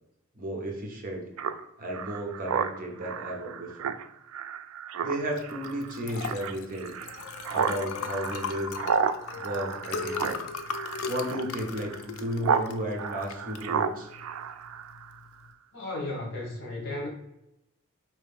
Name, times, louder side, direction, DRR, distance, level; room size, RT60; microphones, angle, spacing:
voice 1, 0.4-1.2 1.8-3.9 5.0-6.9 7.5-8.7 9.4-10.5 11.0-14.1, equal, 40° right, 1 dB, 0.8 m, -33 dB
Speech synthesizer, 1.4-12.7 13.0-15.2, right 6 dB, 80° right, 0.3 m, -32 dB
Liquid, 5.3-15.5, left 5 dB, 75° left, 0.4 m, -38 dB
voice 2, 15.7-17.1, left 2 dB, 55° left, -2 dB, 1.6 m, -34 dB
4.5 x 3.1 x 3.4 m, 0.86 s
head